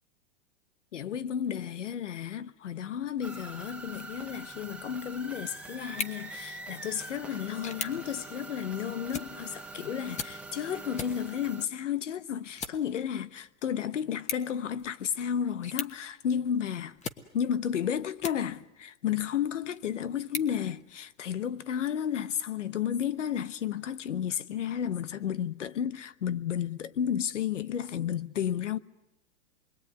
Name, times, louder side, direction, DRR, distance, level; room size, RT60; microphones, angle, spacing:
voice 1, 0.9-17.0 17.3-28.8, left 9 dB, 85° left, 1.1 m, -32 dB
sound 1, 3.2-11.7, right 2 dB, 5° right, 1.3 m, -44 dB
sound 2, 5.8-18.8 19.3-21.4, left 6 dB, 20° left, 1.3 m, -43 dB
27.0 x 22.0 x 9.4 m
hypercardioid pair, 125°, 35 cm